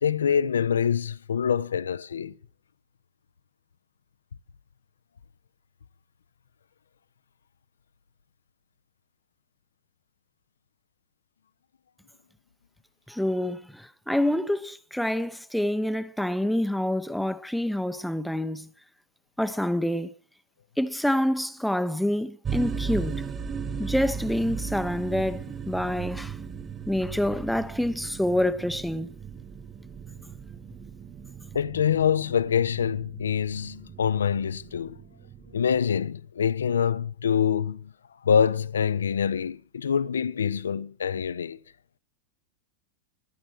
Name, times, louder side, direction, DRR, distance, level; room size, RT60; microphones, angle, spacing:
voice 1, 0.0-2.3 31.5-35.0 35.5-37.9 38.2-41.6, left 7 dB, 70° left, 0.6 m, -25 dB
voice 2, 13.1-18.7 19.4-20.1 20.8-23.2 23.8-26.4 26.9-29.1, left 1 dB, ahead, 0.8 m, -27 dB
sound 1, 22.4-35.8, right 6 dB, 25° right, 1.6 m, -37 dB
15.0 x 10.0 x 7.5 m
figure-of-eight pair, 90°, 0 cm